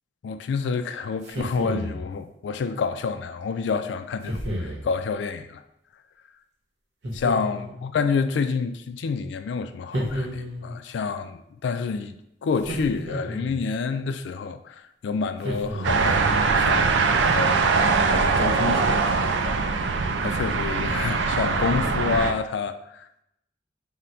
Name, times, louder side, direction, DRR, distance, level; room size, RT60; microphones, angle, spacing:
voice 1, 0.2-5.6 7.1-12.2 12.4-16.9 17.3-19.9 20.2-23.2, left 5 dB, 80° left, 0.3 m, -28 dB
sound 1, 1.2-2.1 4.2-4.9 7.0-7.8 9.9-10.8 12.6-13.6 15.4-16.2, equal, 70° right, 0.9 m, -31 dB
sound 2, 15.8-22.3, right 4 dB, 85° right, 0.4 m, -22 dB
3.8 x 2.1 x 4.3 m
head